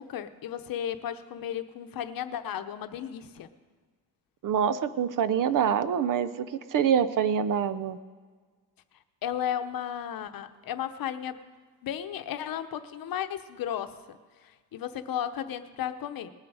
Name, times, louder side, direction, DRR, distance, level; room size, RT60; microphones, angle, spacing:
voice 1, 0.0-3.5 9.2-11.4 11.8-16.3, left 10 dB, 70° left, 9 dB, 0.8 m, -34 dB
voice 2, 4.4-8.0, right 8 dB, 60° right, 14 dB, 0.6 m, -26 dB
19.5 x 9.8 x 4.8 m, 1.5 s
wide cardioid pair, 180°, 37 cm